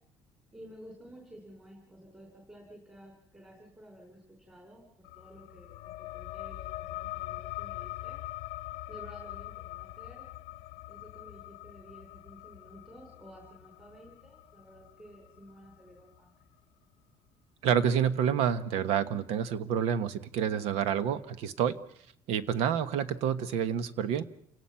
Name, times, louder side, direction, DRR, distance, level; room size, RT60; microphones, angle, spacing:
voice 1, 0.5-4.9 5.1-8.2 8.9-10.3 10.9-16.5, equal, 10° right, 1 dB, 4.4 m, -52 dB
sound 1, 5.0-16.2, left 18 dB, 90° left, 0.7 m, -43 dB
voice 2, 17.6-21.8 22.3-24.2, right 8 dB, 65° right, 12 dB, 1.3 m, -28 dB
29.0 x 17.5 x 5.9 m, 0.70 s
cardioid pair, 175°, 11 cm